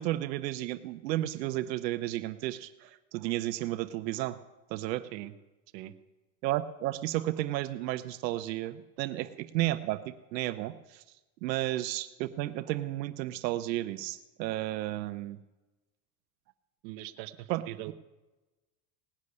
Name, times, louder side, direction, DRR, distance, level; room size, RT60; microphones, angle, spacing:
voice 1, 0.0-4.4 4.7-5.0 6.4-11.0 11.4-15.4 17.5-17.6 17.9-18.0, right 15 dB, 85° right, 11 dB, 0.9 m, -33 dB
voice 2, 16.8-17.9, right 15 dB, 50° right, 8 dB, 1.1 m, -41 dB
18.0 x 6.5 x 9.7 m, 1.1 s
supercardioid pair, 145°, 49 cm